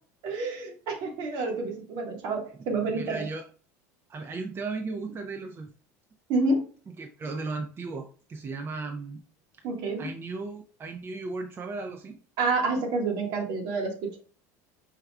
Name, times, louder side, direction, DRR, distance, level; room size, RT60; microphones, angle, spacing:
voice 1, 0.2-3.3 6.3-6.7 9.6-10.1 12.4-14.2, right 3 dB, 60° right, 2 dB, 1.3 m, -28 dB
voice 2, 2.8-3.4 4.1-5.7 7.0-9.2 10.0-12.2, right 3 dB, 25° right, 3 dB, 0.5 m, -36 dB
4.9 x 2.3 x 3.3 m, 0.40 s
supercardioid pair, 95°, 9 cm